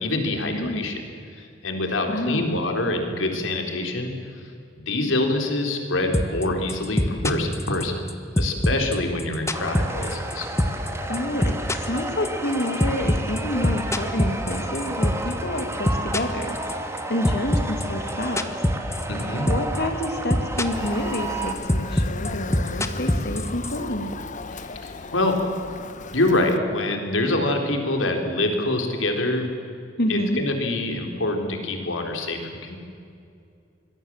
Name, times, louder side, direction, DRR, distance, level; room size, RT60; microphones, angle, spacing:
voice 1, 0.0-1.0 1.3-4.1 4.9-8.0 8.4-10.5 19.1-19.5 23.0-23.1 24.5-25.4 26.1-29.5 30.1-32.8, left 2 dB, 80° left, 4 dB, 3.9 m, -25 dB
voice 2, 0.5-0.8 2.1-2.6 11.1-11.5 11.8-16.7 17.1-18.5 19.5-24.1 30.0-30.4, left 1 dB, 60° left, 5 dB, 2.6 m, -28 dB
sound 1, 6.1-6.4 6.7-8.1 8.4-10.3 10.6-10.9 11.1-15.3 15.6-17.0 17.2-19.2 19.5-19.8 20.0-20.9 21.1-23.8, left 1 dB, 15° left, 1.3 m, -22 dB
sound 2, 9.5-21.5, right 1 dB, 15° right, 2.3 m, -32 dB
Motor vehicle (road) / Siren, 20.7-26.6, left 4 dB, 40° left, 1.1 m, -37 dB
25.5 x 21.0 x 7.5 m, 2.4 s
head